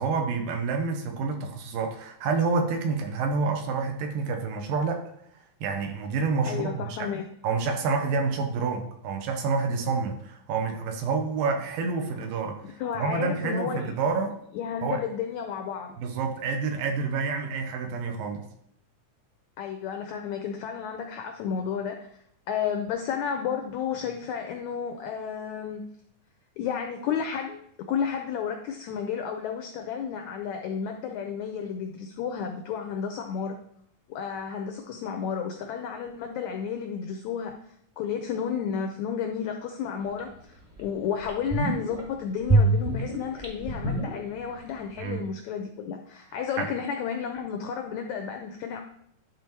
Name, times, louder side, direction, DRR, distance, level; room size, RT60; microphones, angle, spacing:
voice 1, 0.0-5.0 5.6-7.1 7.4-14.3 14.8-15.0 16.0-18.4 45.0-45.2 46.6-46.7, right 4 dB, 85° right, 4 dB, 2.7 m, -28 dB
voice 2, 6.5-7.2 12.6-13.9 14.5-16.0 19.6-22.1 22.5-25.8 26.6-27.6 27.9-33.6 34.1-37.6 38.0-40.3 40.8-48.8, left 7 dB, 85° left, 4 dB, 1.6 m, -32 dB
sound 1, 40.2-40.3 40.8-40.9 41.2-42.0 42.4-44.7 44.9-45.0, right 2 dB, 20° right, 0.9 m, -25 dB
11.0 x 3.8 x 4.5 m, 0.71 s
omnidirectional pair, 4.0 m